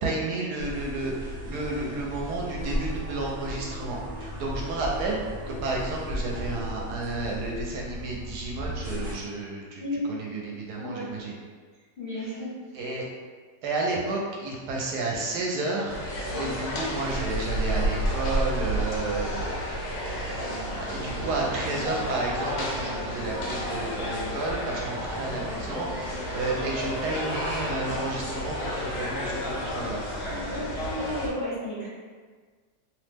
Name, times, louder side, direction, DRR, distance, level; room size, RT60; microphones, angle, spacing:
voice 1, 0.0-9.8 10.1-11.3 12.2-12.4 12.7-13.1 13.6-30.1, right 2 dB, 75° right, -2 dB, 1.1 m, -32 dB
sound 1, 0.6-9.2, equal, 40° right, 0.5 m, -35 dB
voice 2, 12.0-12.5 16.3-16.5 21.8-21.9 26.4-26.5 30.3-31.9, left 1 dB, 50° left, -11 dB, 0.7 m, -33 dB
sound 2, 15.9-31.3, equal, 85° left, 1.3 m, -31 dB
3.0 x 2.0 x 3.3 m, 1.5 s
omnidirectional pair, 1.8 m